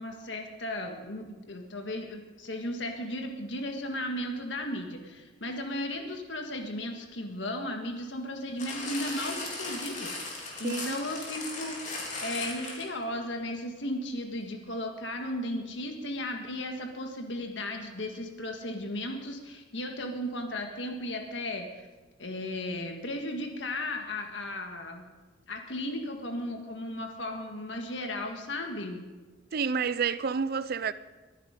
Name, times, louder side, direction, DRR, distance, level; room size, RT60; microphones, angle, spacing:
voice 1, 0.0-21.9 22.2-25.0 25.5-29.0, left 1 dB, 70° left, 1.7 m, -35 dB
sound 1, 8.6-13.0 13.8-13.9, left 3 dB, 40° left, 3.7 m, -37 dB
voice 2, 10.6-11.0 29.5-30.9, right 5 dB, 55° right, 0.5 m, -29 dB
22.5 x 9.9 x 5.3 m
head